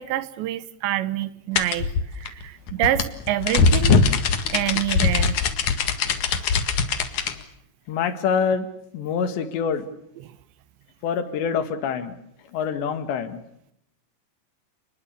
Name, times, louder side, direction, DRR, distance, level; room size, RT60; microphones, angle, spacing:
voice 1, 0.0-4.0 4.5-5.4, right 13 dB, 80° right, 16 dB, 3.3 m, -27 dB
sound 1, 1.6-7.3, left 5 dB, 55° left, 2.6 m, -21 dB
voice 2, 7.9-8.7 8.9-9.9 11.0-12.2 12.5-13.4, left 6 dB, 75° left, 11 dB, 4.1 m, -25 dB
30.0 x 21.0 x 6.9 m, 0.73 s
omnidirectional pair, 5.2 m